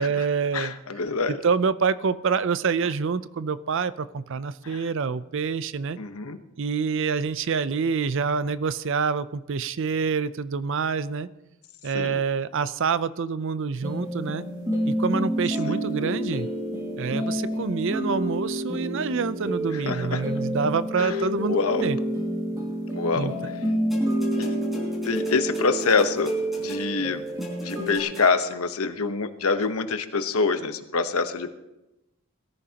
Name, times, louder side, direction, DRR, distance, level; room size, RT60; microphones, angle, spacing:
voice 1, 0.0-0.8 1.3-6.0 6.6-11.3 11.8-14.4 14.9-16.5 17.0-22.0 23.1-23.3, right 5 dB, 60° right, 15 dB, 0.5 m, -26 dB
voice 2, 0.5-1.4 4.6-4.8 6.0-6.4 11.9-12.2 15.7-15.8 19.7-20.2 21.0-21.2 21.5-21.8 23.0-23.3 24.4-24.5 25.0-26.3 26.6-27.2 27.6-31.6, left 4 dB, 80° left, 8 dB, 1.0 m, -26 dB
sound 1, 13.8-28.0, equal, 15° right, 2.1 m, -28 dB
sound 2, 23.9-28.7 29.6-29.7, equal, ahead, 4.5 m, -42 dB
21.5 x 14.0 x 2.9 m, 0.96 s
head